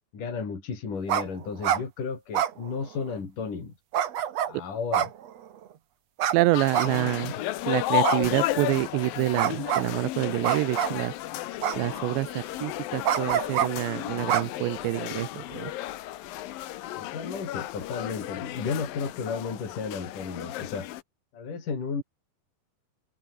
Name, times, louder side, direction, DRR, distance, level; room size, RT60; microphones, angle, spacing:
voice 1, 0.1-3.7 4.5-5.1 6.9-7.4 17.0-20.9 21.3-22.0, left 5 dB, 45° left, 6.5 m, -33 dB
sound 1, 1.1-1.3 1.5-1.8 2.3-3.1 3.9-4.5 4.9-5.6 6.2-6.4 6.7-7.3 8.0-8.7 9.4-9.9 10.4-11.0 11.6-12.2 13.0-13.7 14.3-15.0, right 10 dB, 60° right, 1.8 m, -26 dB
voice 2, 6.3-7.3 7.7-11.1 11.8-15.7, right 19 dB, 80° right, 3.0 m, -27 dB
sound 2, 6.5-21.0, left 15 dB, 70° left, 2.4 m, -33 dB
omnidirectional pair, 5.1 m